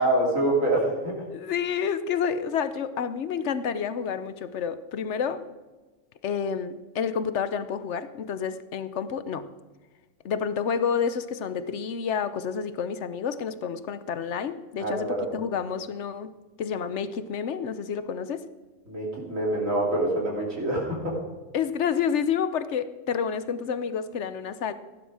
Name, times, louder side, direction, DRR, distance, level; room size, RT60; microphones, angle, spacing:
voice 1, 0.0-1.1 14.8-15.3 18.9-21.1, right 1 dB, 65° right, -2 dB, 3.4 m, -25 dB
voice 2, 1.3-5.4 6.2-9.5 10.2-16.3 16.6-18.4 21.5-24.7, left 7 dB, 60° left, 13 dB, 1.0 m, -29 dB
16.5 x 11.0 x 4.8 m, 1.3 s
omnidirectional pair, 1.5 m